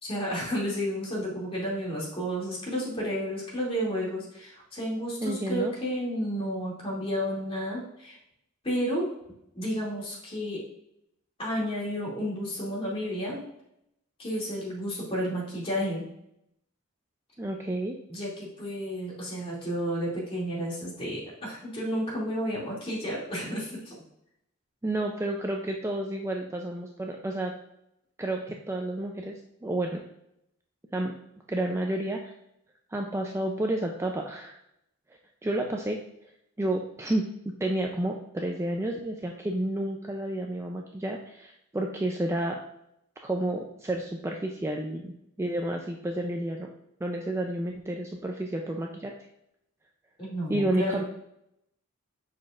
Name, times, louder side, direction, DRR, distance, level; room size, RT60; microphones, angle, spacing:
voice 1, 0.0-8.2 8.6-9.1 9.5-10.6 11.4-13.4 14.2-16.1 18.1-24.0 50.2-51.0, equal, 25° left, -5 dB, 2.5 m, -31 dB
voice 2, 5.2-5.7 17.4-18.0 24.8-27.5 28.2-29.3 29.6-30.0 30.9-31.1 31.5-32.3 32.9-34.6 35.4-36.0 36.6-37.2 37.6-42.6 43.2-45.1 45.4-46.7 47.0-49.1 50.5-51.0, right 1 dB, 10° right, 1 dB, 0.4 m, -30 dB
7.3 x 5.9 x 2.4 m, 0.79 s
head